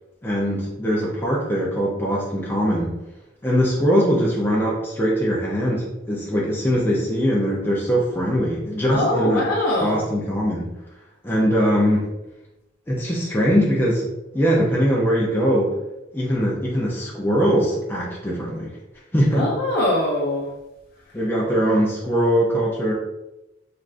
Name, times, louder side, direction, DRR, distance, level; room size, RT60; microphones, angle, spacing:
voice 1, 0.2-2.9 3.4-9.5 9.8-10.7 11.2-12.1 12.9-15.7 16.1-18.7 19.1-19.5 21.1-22.9, equal, 10° left, -4 dB, 0.4 m, -21 dB
voice 2, 8.9-10.0 19.3-20.5, left 1 dB, 50° left, -5 dB, 0.7 m, -22 dB
3.4 x 2.4 x 2.4 m, 0.96 s
head